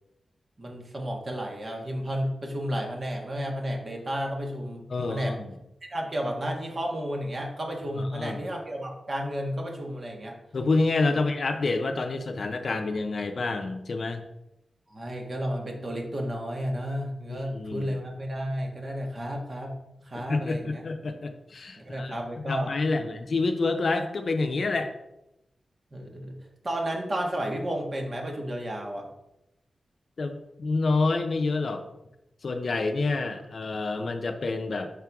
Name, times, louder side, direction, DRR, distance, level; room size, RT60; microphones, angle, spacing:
voice 1, 0.6-5.4 5.8-10.4 11.1-11.2 14.9-19.7 20.0-20.8 21.7-23.1 25.9-26.4 26.6-29.1, equal, 45° right, 1 dB, 1.4 m, -32 dB
voice 2, 4.9-5.5 8.0-8.4 10.5-14.2 17.3-18.0 20.1-22.1 22.5-24.9 30.2-31.9 32.4-34.9, left 3 dB, 60° left, 6 dB, 0.6 m, -28 dB
5.9 x 4.5 x 3.5 m, 0.88 s
cardioid pair, 65°, 0 cm